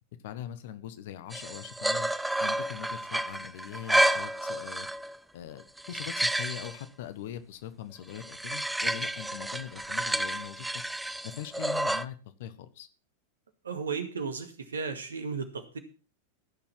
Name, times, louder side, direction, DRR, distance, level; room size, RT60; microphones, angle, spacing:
voice 1, 0.2-2.1 2.4-4.9 5.3-10.8 11.2-12.9, left 11 dB, 55° left, 13 dB, 1.3 m, -41 dB
sound 1, 1.3-5.2 5.6-6.8 8.1-12.0, right 1 dB, 5° right, 0.6 m, -30 dB
voice 2, 13.6-15.8, right 5 dB, 70° right, 8 dB, 2.1 m, -34 dB
15.0 x 7.3 x 5.9 m, 0.35 s
figure-of-eight pair, 90°, 0 cm